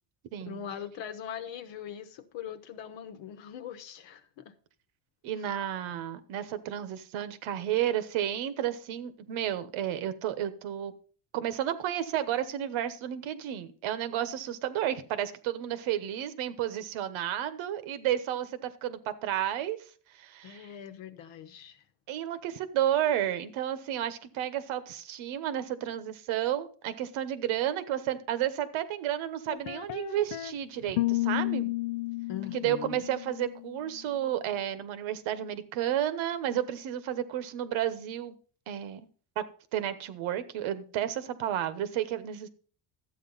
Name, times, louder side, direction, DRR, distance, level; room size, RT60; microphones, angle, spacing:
voice 1, 0.5-4.5 20.4-21.8 32.3-33.0, left 9 dB, 70° left, 1.2 m, -41 dB
voice 2, 5.2-10.9 11.3-19.8 20.1-20.7 22.1-31.7 32.5-38.4 38.7-39.1 39.4-39.5 39.7-42.5, right 11 dB, 80° right, 1.2 m, -32 dB
sound 1, 29.5-30.5 30.9-33.8, left 19 dB, 85° left, 0.6 m, -32 dB
12.5 x 8.6 x 4.0 m
cardioid pair, 180°, 47 cm